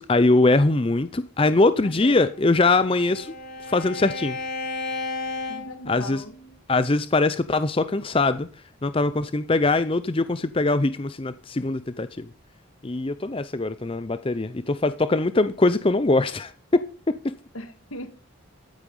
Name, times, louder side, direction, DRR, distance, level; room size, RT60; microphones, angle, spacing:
voice 1, 0.0-3.3 3.7-4.4 5.9-6.2 6.7-8.5 8.8-12.3 12.8-16.8 17.1-17.3, left 2 dB, 25° left, 0.5 m, -22 dB
voice 2, 1.8-2.3 5.5-6.4 17.5-18.1, left 2 dB, 80° left, 2.2 m, -38 dB
Bowed string instrument, 2.2-6.5, left 3 dB, 45° left, 5.4 m, -34 dB
13.0 x 8.9 x 5.4 m
head